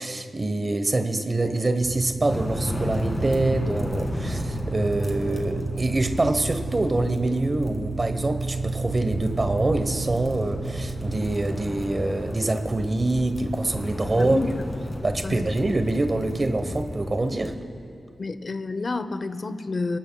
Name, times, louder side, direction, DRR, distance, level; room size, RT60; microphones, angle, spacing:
voice 1, 0.0-14.4 15.0-17.5, right 2 dB, 30° right, 8 dB, 1.1 m, -25 dB
sound 1, 1.8-11.2, right 4 dB, 70° right, 0.8 m, -32 dB
sound 2, 2.3-17.5, left 1 dB, 20° left, 2.1 m, -33 dB
voice 2, 14.2-14.5 15.2-15.5 18.2-20.0, left 3 dB, 40° left, 11 dB, 0.8 m, -29 dB
29.0 x 19.5 x 2.3 m, 2.5 s
wide cardioid pair, 120°, 0 cm